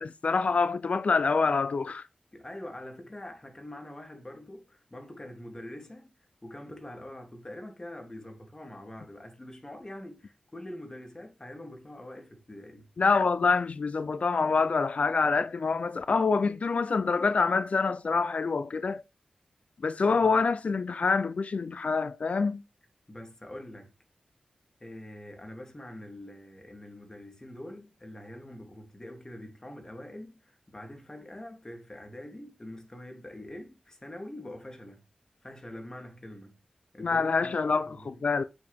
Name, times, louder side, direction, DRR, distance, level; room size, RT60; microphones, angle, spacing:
voice 1, 0.0-2.1 13.0-19.0 19.8-22.6 37.0-38.4, left 4 dB, 65° left, 0.6 m, -26 dB
voice 2, 2.3-12.9 20.0-20.4 23.1-23.9 24.8-35.0 35.4-36.6 36.9-38.2, left 1 dB, 25° left, 3.0 m, -44 dB
8.2 x 7.1 x 3.6 m
cardioid pair, 55°, 2 cm